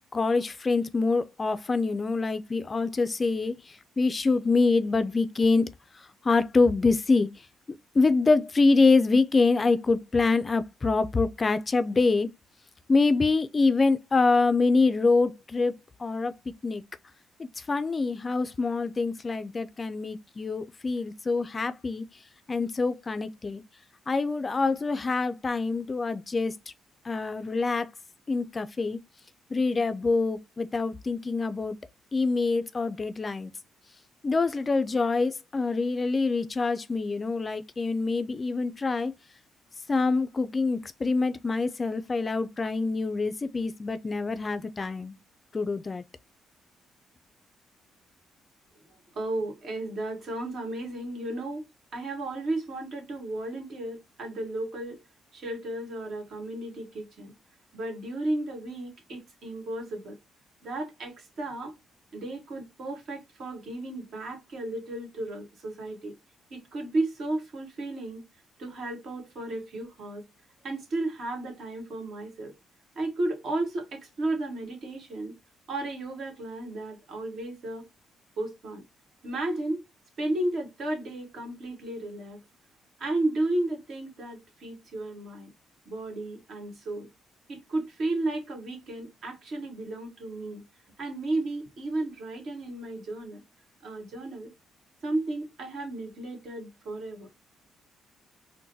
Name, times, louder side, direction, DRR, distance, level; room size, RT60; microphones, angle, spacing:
voice 1, 0.1-3.5 4.0-5.7 6.2-7.3 8.0-12.3 12.9-15.7 16.0-16.3 16.6-16.8 17.4-22.1 22.5-23.6 24.1-26.5 27.1-27.9 28.3-29.0 29.5-31.8 32.1-33.5 34.2-39.1 39.9-45.1 45.5-46.0, left 3 dB, 30° left, 0.3 m, -25 dB
voice 2, 49.1-51.6 51.9-55.0 55.3-57.3 57.7-60.2 60.6-61.7 62.1-66.1 66.5-68.2 68.6-70.2 70.6-72.5 72.9-75.3 75.7-77.8 78.4-78.8 79.2-79.8 80.2-82.4 83.0-85.5 85.8-87.1 87.5-90.6 91.0-93.4 93.8-94.5 95.0-97.3, right 2 dB, 65° right, 1.6 m, -33 dB
3.8 x 2.1 x 2.6 m
cardioid pair, 90°, 0 cm